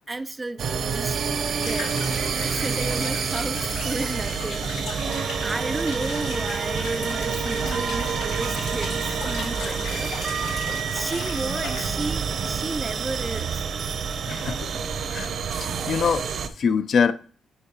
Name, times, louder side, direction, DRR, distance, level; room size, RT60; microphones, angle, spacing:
voice 1, 0.1-1.2 1.6-2.0 2.5-4.7 5.4-10.1 10.9-13.6, right 2 dB, 20° right, 0.3 m, -33 dB
sound 1, 0.6-16.5, right 6 dB, 60° right, 0.6 m, -28 dB
sound 2, 1.6-11.9, left 4 dB, 85° left, 1.2 m, -37 dB
voice 2, 14.3-14.7 15.1-16.2 16.6-17.1, left 6 dB, 60° left, 0.4 m, -24 dB
9.7 x 4.4 x 2.8 m
supercardioid pair, 70°, 0 cm